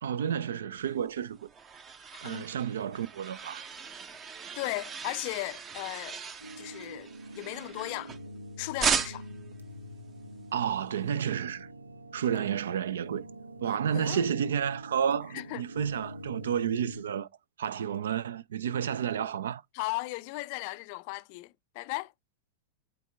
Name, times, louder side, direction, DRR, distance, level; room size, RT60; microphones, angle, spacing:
voice 1, 0.0-1.5 2.2-3.7 10.5-11.7 12.1-13.2 13.6-17.3 17.6-19.6, right 8 dB, 65° right, 0.4 m, -31 dB
sound 1, 1.1-8.4 8.8-9.5, right 6 dB, 25° right, 0.8 m, -36 dB
voice 2, 2.0-2.4 4.6-6.2 6.6-8.1 8.6-9.3 13.9-14.2 15.3-15.6 19.7-22.1, left 22 dB, 45° left, 0.4 m, -36 dB
sound 2, 6.4-17.0, equal, 80° right, 0.9 m, -45 dB
8.4 x 3.4 x 3.4 m
figure-of-eight pair, 90°, 0 cm